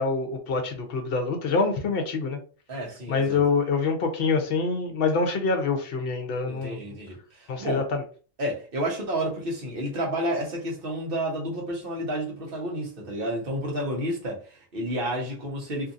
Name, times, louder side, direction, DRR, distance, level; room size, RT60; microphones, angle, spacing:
voice 1, 0.0-2.4 3.1-6.8 7.5-8.0, left 4 dB, 60° left, 0.8 m, -25 dB
voice 2, 2.7-3.4 6.4-7.9 8.4-15.9, right 1 dB, 50° right, 1.1 m, -30 dB
2.8 x 2.6 x 2.5 m
omnidirectional pair, 1.2 m